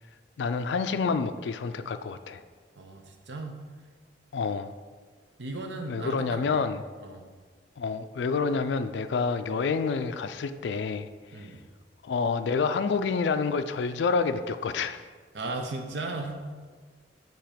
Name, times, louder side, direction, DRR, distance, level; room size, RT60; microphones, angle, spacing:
voice 1, 0.4-2.4 4.3-4.7 5.9-6.8 7.8-11.1 11.4-11.5 12.0-15.0, left 5 dB, 80° left, 10 dB, 0.4 m, -28 dB
voice 2, 2.8-3.6 5.4-6.7 7.0-7.2 11.3-11.6 15.3-16.4, right 2 dB, 85° right, 4 dB, 0.8 m, -36 dB
8.8 x 3.0 x 5.0 m, 1.5 s
head